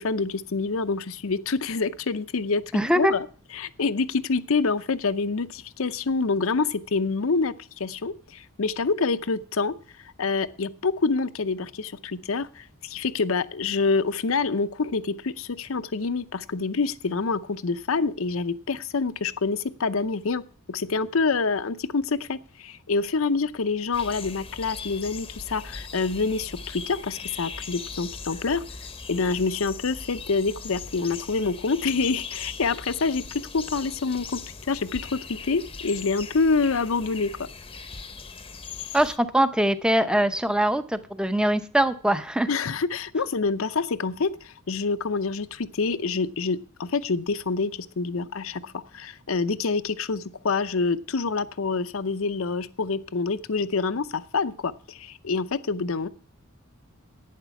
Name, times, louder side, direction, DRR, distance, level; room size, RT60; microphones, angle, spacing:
voice 1, 0.0-3.3 3.5-9.7 10.2-20.4 20.7-28.6 29.1-33.3 33.5-34.4 34.7-37.3 42.5-56.1, left 4 dB, 70° left, 14 dB, 0.7 m, -26 dB
voice 2, 2.7-3.1 38.9-42.5, right 1 dB, 5° right, 11 dB, 0.7 m, -22 dB
sound 1, 23.9-39.2, left 5 dB, 25° left, 0.8 m, -40 dB
11.0 x 9.2 x 5.8 m, 0.40 s
head